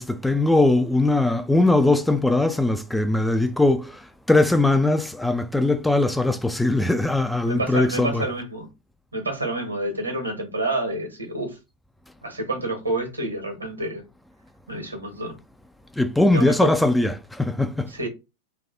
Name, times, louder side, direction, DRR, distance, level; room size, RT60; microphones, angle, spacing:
voice 1, 0.0-8.2 16.0-17.9, left 2 dB, 5° left, 0.4 m, -20 dB
voice 2, 7.4-8.7 9.1-11.6 12.2-14.0 14.7-15.3 16.3-16.7 17.9-18.1, right 1 dB, 85° right, 1.8 m, -28 dB
3.4 x 3.1 x 4.1 m
figure-of-eight pair, 90°, 0 cm